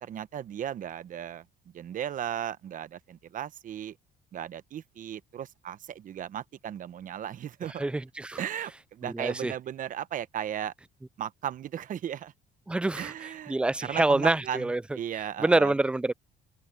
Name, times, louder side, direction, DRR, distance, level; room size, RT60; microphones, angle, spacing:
voice 1, 0.0-1.4 1.7-4.0 4.3-7.8 8.4-10.7 11.2-12.3 12.9-15.7, right 10 dB, 50° right, 1.1 m, -36 dB
voice 2, 7.8-8.4 9.1-9.5 12.7-13.1 13.5-14.8 15.4-16.1, right 2 dB, 5° right, 0.3 m, -26 dB
open air
cardioid pair, 110°, 17 cm